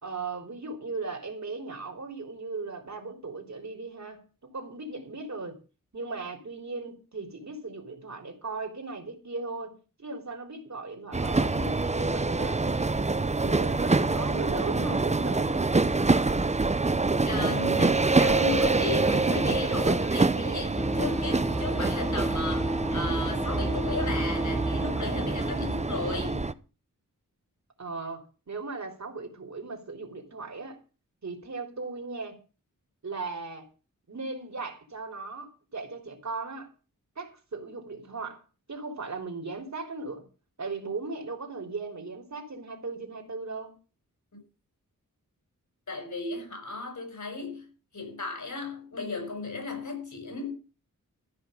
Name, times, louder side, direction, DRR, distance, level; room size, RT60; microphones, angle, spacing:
voice 1, 0.0-5.6 5.9-12.9 13.4-15.7 27.8-30.8 31.2-32.4 33.0-33.7 34.1-36.7 37.2-38.4 38.7-40.2 40.6-43.8, right 3 dB, 55° right, 3.6 m, -37 dB
sound 1, 11.1-26.5, right 3 dB, 20° right, 0.7 m, -26 dB
voice 2, 17.2-26.6 45.9-47.7 47.9-50.5, left 3 dB, 60° left, 5.7 m, -35 dB
sound 2, 20.8-25.9, right 1 dB, ahead, 1.7 m, -32 dB
14.5 x 5.5 x 9.0 m
wide cardioid pair, 105°, 33 cm